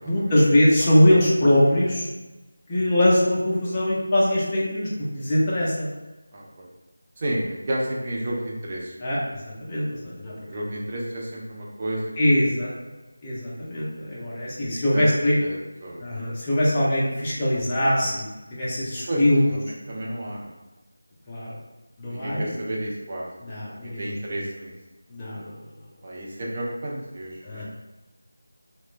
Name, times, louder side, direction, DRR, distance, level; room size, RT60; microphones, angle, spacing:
voice 1, 0.0-2.1 2.7-5.9 9.0-10.3 12.2-12.7 13.2-15.4 16.0-19.4 21.3-21.5 22.0-22.5 23.4-24.0 25.1-25.6 27.4-27.6, left 1 dB, 20° left, -7 dB, 0.5 m, -22 dB
voice 2, 6.3-6.7 7.2-9.1 10.5-12.8 14.9-16.0 19.1-20.5 22.1-23.3 23.5-24.7 26.0-27.6, right 1 dB, 35° right, -4 dB, 0.4 m, -32 dB
2.9 x 2.0 x 2.4 m, 1.1 s
figure-of-eight pair, 165°, 0 cm